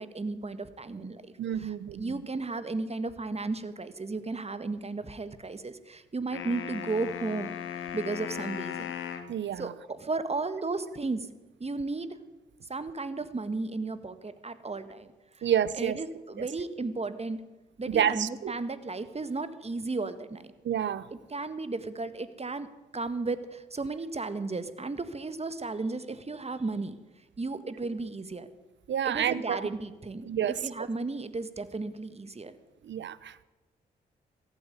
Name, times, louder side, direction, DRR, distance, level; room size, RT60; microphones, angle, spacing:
voice 1, 0.0-8.9 9.6-11.3 11.6-12.2 12.7-15.1 15.4-15.5 15.7-17.4 17.8-20.5 21.3-22.7 22.9-27.0 27.4-28.5 29.0-30.3 30.6-32.5, right 3 dB, 30° right, 12 dB, 1.5 m, -34 dB
voice 2, 1.4-2.2 9.3-9.7 15.4-16.0 17.9-18.5 20.6-21.1 28.9-29.7 30.2-30.5 32.8-33.4, right 9 dB, 65° right, 19 dB, 0.8 m, -29 dB
sound 1, 6.3-9.3, left 9 dB, 80° left, 1.3 m, -37 dB
15.0 x 9.3 x 9.6 m, 1.1 s
supercardioid pair, 45°, 20 cm